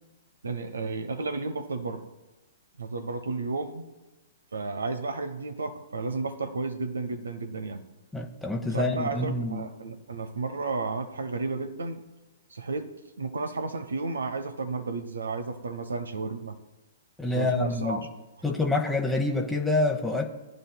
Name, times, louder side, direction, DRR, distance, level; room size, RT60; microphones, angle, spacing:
voice 1, 0.4-2.1 2.8-3.9 4.5-7.8 8.7-12.0 12.5-12.9 13.2-16.6 17.3-18.0, right 3 dB, 80° right, 10 dB, 0.8 m, -32 dB
voice 2, 8.1-9.7 17.2-18.1 18.4-20.2, left 2 dB, 5° left, 1 dB, 0.9 m, -27 dB
18.5 x 10.0 x 2.2 m, 1.1 s
figure-of-eight pair, 115°, 0 cm